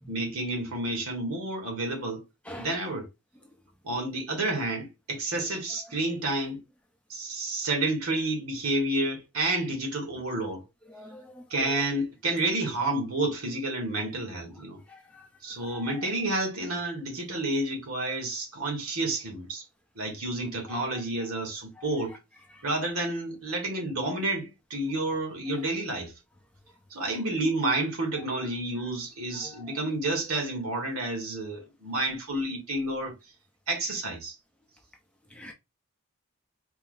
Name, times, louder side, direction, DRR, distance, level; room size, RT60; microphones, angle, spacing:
voice 1, 0.1-2.2 2.6-3.1 3.8-6.6 7.1-10.6 11.5-14.8 15.4-19.6 20.0-22.1 22.6-26.1 26.9-33.1 33.7-34.3, right 2 dB, 85° right, 1.7 m, -30 dB
voice 2, 10.9-11.4 14.9-15.2 15.7-15.8 35.3-35.5, left 1 dB, 5° left, 0.6 m, -44 dB
4.3 x 2.1 x 3.9 m
head